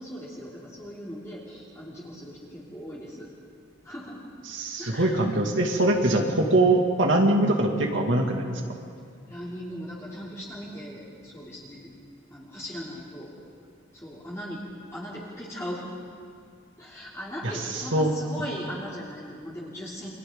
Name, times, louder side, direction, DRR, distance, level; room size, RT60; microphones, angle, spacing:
voice 1, 0.0-3.3 3.8-4.2 4.8-5.4 9.3-11.9 12.3-13.3 13.9-15.9 16.8-20.2, equal, 15° left, -7 dB, 3.3 m, -38 dB
voice 2, 4.5-8.6 17.4-17.5 17.9-18.1, right 1 dB, 65° right, 1 dB, 2.6 m, -22 dB
29.5 x 25.0 x 4.0 m, 2.4 s
head